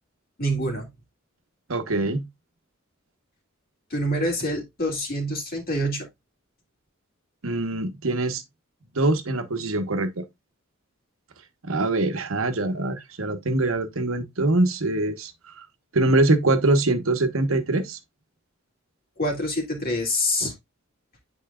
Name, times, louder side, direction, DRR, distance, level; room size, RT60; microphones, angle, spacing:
voice 1, 0.4-0.9 3.9-6.1 19.2-20.5, equal, 45° left, 2.5 m, -26 dB
voice 2, 1.7-2.3 7.4-8.4 8.9-10.2 11.6-15.7 15.9-18.0, right 2 dB, 75° right, 1.2 m, -23 dB
9.1 x 4.9 x 2.4 m
head